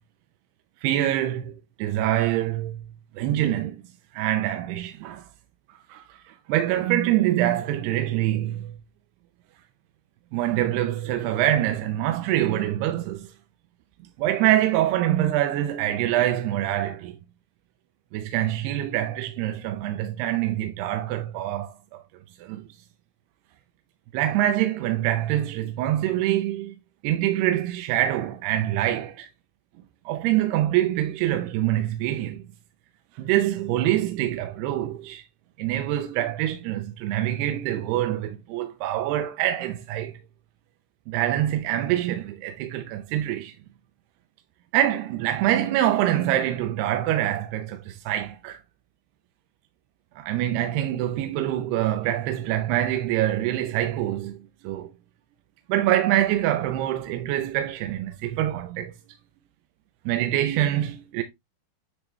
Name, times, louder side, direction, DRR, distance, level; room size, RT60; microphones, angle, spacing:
voice 1, 0.8-2.9 3.2-3.8 4.1-5.3 5.9-8.8 10.3-13.3 14.2-17.2 18.1-22.0 22.4-22.7 24.1-26.7 27.0-29.3 30.1-32.4 33.1-35.2 35.6-40.2 41.1-43.5 44.7-48.6 50.2-54.4 54.6-54.9 55.7-58.9 60.1-61.2, right 13 dB, 80° right, 2.5 m, -25 dB
9.6 x 3.4 x 3.0 m
omnidirectional pair, 5.0 m